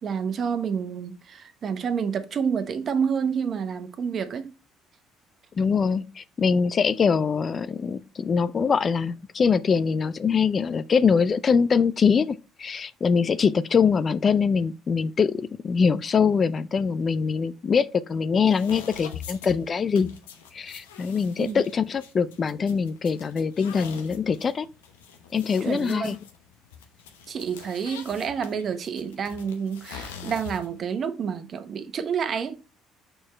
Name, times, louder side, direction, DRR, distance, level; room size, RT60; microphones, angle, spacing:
voice 1, 0.0-4.5 21.4-21.6 25.6-26.1 27.3-32.7, right 6 dB, 50° right, 1.1 m, -29 dB
voice 2, 5.6-20.1 20.5-24.7 25.3-26.2, left 6 dB, 40° left, 0.5 m, -23 dB
sound 1, 18.4-30.8, left 7 dB, 90° left, 0.9 m, -44 dB
6.3 x 4.6 x 4.4 m
hypercardioid pair, 60°, 0 cm